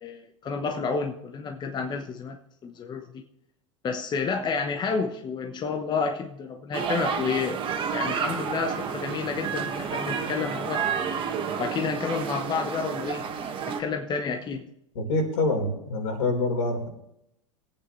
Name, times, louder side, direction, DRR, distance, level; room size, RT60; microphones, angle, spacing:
voice 1, 0.0-2.4 2.6-3.2 3.8-7.6 7.9-10.9 11.6-13.3 13.6-14.7, left 5 dB, 25° left, 5 dB, 1.0 m, -30 dB
sound 1, 6.7-13.8, right 6 dB, 30° right, 1.6 m, -30 dB
voice 2, 14.9-16.9, left 2 dB, 70° left, 1 dB, 4.1 m, -26 dB
21.5 x 8.8 x 3.2 m, 0.79 s
hypercardioid pair, 100°, 16 cm